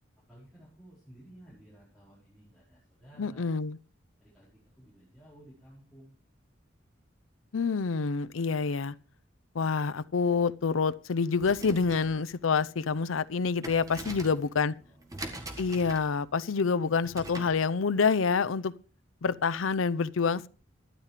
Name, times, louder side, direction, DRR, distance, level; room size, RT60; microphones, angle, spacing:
voice 1, 0.3-3.5 4.2-6.2 14.1-15.0, right 1 dB, ahead, 4.8 m, -55 dB
voice 2, 3.2-3.8 7.5-8.9 9.5-14.7 15.6-18.7 19.2-20.5, left 5 dB, 90° left, 0.6 m, -27 dB
sound 1, 11.3-17.6, right 1 dB, 15° right, 1.6 m, -44 dB
12.5 x 10.0 x 5.0 m
head